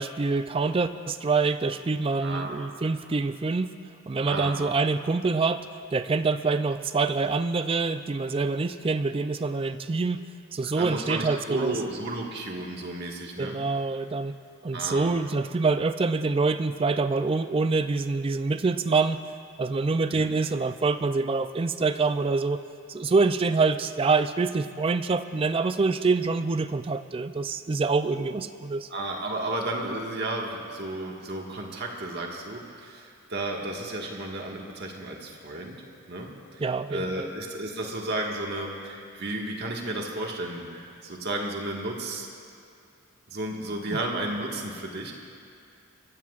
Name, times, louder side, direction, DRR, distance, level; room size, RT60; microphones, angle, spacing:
voice 1, 0.0-3.7 4.1-5.6 5.9-10.2 10.5-11.7 13.4-14.4 14.6-19.2 19.6-22.6 22.9-28.9 36.6-37.3, right 4 dB, 25° right, 10 dB, 0.4 m, -26 dB
voice 2, 2.2-2.5 4.3-4.5 10.6-13.6 14.7-15.1 20.1-20.3 28.2-28.3 28.9-35.8 36.1-36.6 36.9-42.3 43.3-45.1, right 2 dB, 50° right, -1 dB, 1.7 m, -33 dB
23.5 x 15.0 x 2.5 m, 2.4 s
head